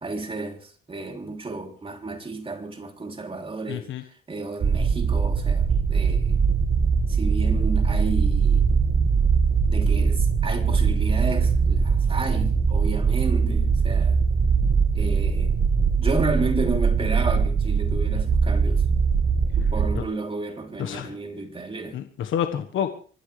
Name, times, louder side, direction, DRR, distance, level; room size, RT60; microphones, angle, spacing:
voice 1, 0.0-3.9 4.3-6.4 7.1-8.6 9.7-14.2 14.9-15.5 16.0-18.8 19.6-22.0, right 3 dB, 25° right, 3.2 m, -32 dB
voice 2, 3.7-4.0 19.9-20.0 20.8-21.1 21.9-22.9, left 9 dB, 75° left, 1.4 m, -28 dB
sound 1, 4.6-20.0, right 5 dB, 45° right, 1.8 m, -21 dB
26.5 x 14.0 x 3.3 m
cardioid pair, 90°, 20 cm